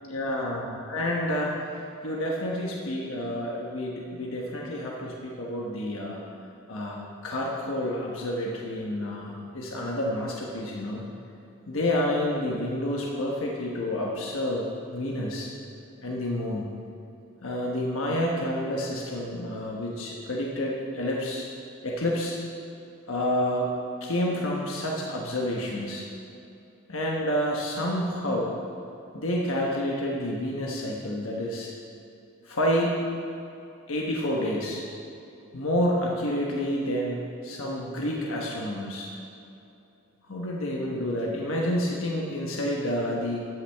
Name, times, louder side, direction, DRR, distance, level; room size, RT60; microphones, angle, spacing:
voice 1, 0.0-6.2 6.7-7.0 7.2-11.1 11.7-14.7 14.9-15.5 16.0-16.7 17.4-21.5 21.8-22.4 23.1-23.7 24.0-26.1 26.9-28.5 29.1-31.7 32.4-33.0 33.9-34.8 35.5-39.1 40.3-43.5, left 1 dB, 75° left, -2 dB, 1.2 m, -29 dB
13.5 x 9.3 x 3.5 m, 2.8 s
head